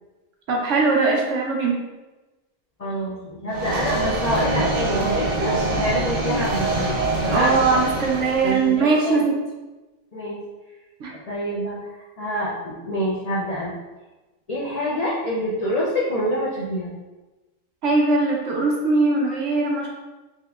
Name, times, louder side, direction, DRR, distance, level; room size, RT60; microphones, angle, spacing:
voice 1, 0.5-1.8 7.3-9.4 11.0-11.1 17.8-19.9, right 3 dB, 65° right, -1 dB, 0.9 m, -20 dB
voice 2, 2.8-6.8 7.2-7.6 8.4-9.2 10.1-10.4 11.3-13.7 14.5-16.9, equal, 70° left, -6 dB, 0.3 m, -26 dB
sound 1, 3.5-8.7, right 2 dB, 90° right, 1.3 m, -24 dB
3.6 x 2.9 x 2.3 m, 1.2 s
omnidirectional pair, 1.5 m